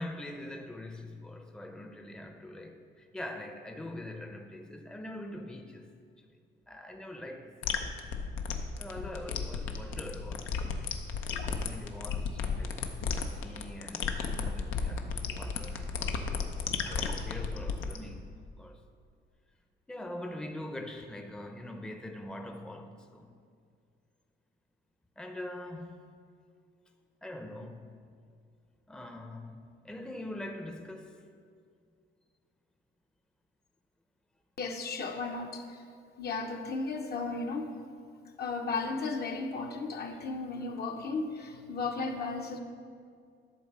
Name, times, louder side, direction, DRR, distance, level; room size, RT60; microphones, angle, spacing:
voice 1, 0.0-5.9 6.2-6.4 6.7-8.0 8.8-11.0 11.5-13.0 13.4-16.3 16.8-18.3 18.6-18.8 19.9-23.3 25.2-26.0 27.2-28.0 28.9-31.3, left 1 dB, 5° left, 0.6 m, -43 dB
sound 1, 7.6-18.0, left 5 dB, 85° left, 0.7 m, -34 dB
voice 2, 34.6-35.8 36.2-37.7 38.4-42.6, left 3 dB, 55° left, 0.9 m, -35 dB
11.5 x 3.9 x 6.7 m
cardioid pair, 90°, 20 cm